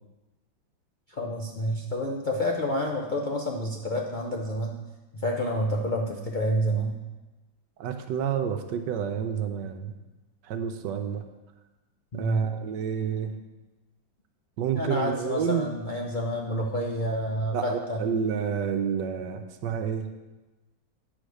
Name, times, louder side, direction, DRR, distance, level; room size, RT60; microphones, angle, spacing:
voice 1, 1.1-4.8 5.1-6.9 12.1-12.5 14.7-18.1, equal, 80° left, -1 dB, 0.4 m, -29 dB
voice 2, 7.8-9.9 10.5-11.2 12.1-13.3 14.6-15.7 17.5-20.1, right 7 dB, 70° right, 7 dB, 1.3 m, -29 dB
9.9 x 5.0 x 6.4 m, 1.1 s
omnidirectional pair, 2.1 m